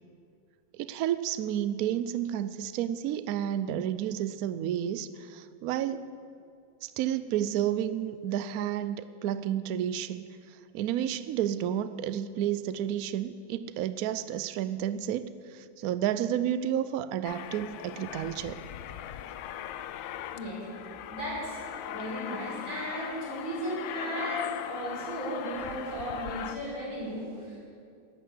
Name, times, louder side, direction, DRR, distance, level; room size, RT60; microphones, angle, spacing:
voice 1, 0.8-6.1 6.8-10.2 10.7-18.6, right 10 dB, 80° right, 13 dB, 0.8 m, -31 dB
Aircraft, 17.2-26.6, left 11 dB, 90° left, 1.4 m, -39 dB
voice 2, 20.3-20.7 21.1-27.6, equal, 40° right, -5 dB, 5.7 m, -35 dB
13.5 x 11.5 x 8.1 m, 2.4 s
omnidirectional pair, 2.1 m